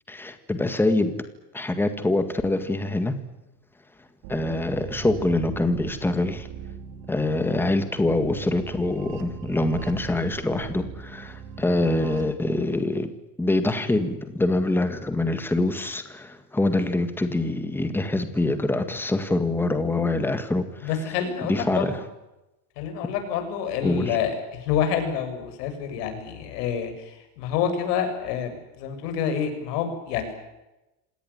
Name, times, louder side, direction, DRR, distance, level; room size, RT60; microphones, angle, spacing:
voice 1, 0.1-1.1 1.5-3.2 4.3-6.5 7.1-13.1 13.4-20.9 21.4-22.0 23.8-24.2, left 2 dB, 5° left, 9 dB, 1.8 m, -25 dB
sound 1, 4.2-12.2, right 6 dB, 65° right, 4.4 m, -40 dB
voice 2, 20.8-22.0 22.8-30.3, left 8 dB, 80° left, 8 dB, 7.1 m, -28 dB
27.0 x 18.5 x 9.7 m, 0.99 s
cardioid pair, 175°, 47 cm